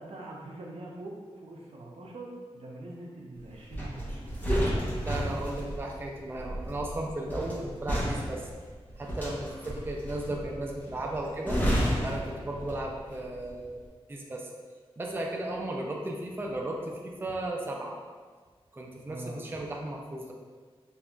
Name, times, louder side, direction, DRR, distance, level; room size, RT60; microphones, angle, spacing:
voice 1, 0.0-4.3 19.0-19.5, right 2 dB, 75° right, -2 dB, 0.6 m, -43 dB
sound 1, 3.7-13.1 13.3-13.6, equal, 15° left, 0.9 m, -32 dB
voice 2, 5.0-8.5 9.0-11.6 12.0-13.8 14.1-14.5 15.0-18.0 18.7-20.3, right 1 dB, 20° right, -1 dB, 0.4 m, -35 dB
5.3 x 2.5 x 2.3 m, 1.5 s
wide cardioid pair, 105°, 10 cm